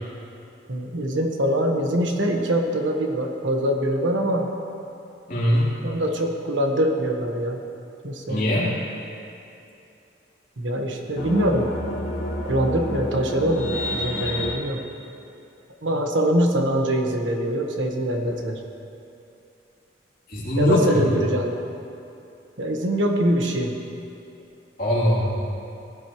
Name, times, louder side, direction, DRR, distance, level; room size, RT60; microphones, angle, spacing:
voice 1, 0.7-4.5 5.8-7.6 8.0-8.4 10.6-11.7 12.4-14.8 15.8-18.6 20.6-21.5 22.6-23.8, right 1 dB, 80° right, 2 dB, 1.3 m, -23 dB
voice 2, 5.3-5.7 8.3-8.7 20.3-21.0 24.8-25.2, left 1 dB, 45° left, -7 dB, 3.2 m, -21 dB
sound 1, 11.2-14.5, left 1 dB, 90° left, 1.9 m, -29 dB
18.0 x 12.0 x 3.1 m, 2.7 s
head